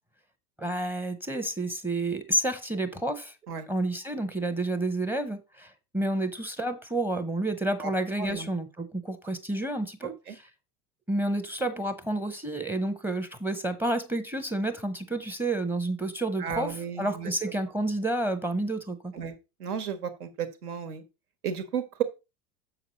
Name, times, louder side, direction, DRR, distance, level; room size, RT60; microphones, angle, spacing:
voice 1, 0.6-3.3 3.7-10.4 11.1-19.1, right 1 dB, 5° right, 0.7 m, -30 dB
voice 2, 8.2-8.5 10.0-10.4 16.4-17.3 19.1-19.3 19.6-21.0 21.4-22.0, right 7 dB, 70° right, 1.4 m, -33 dB
7.2 x 6.0 x 4.0 m
figure-of-eight pair, 85°, 47 cm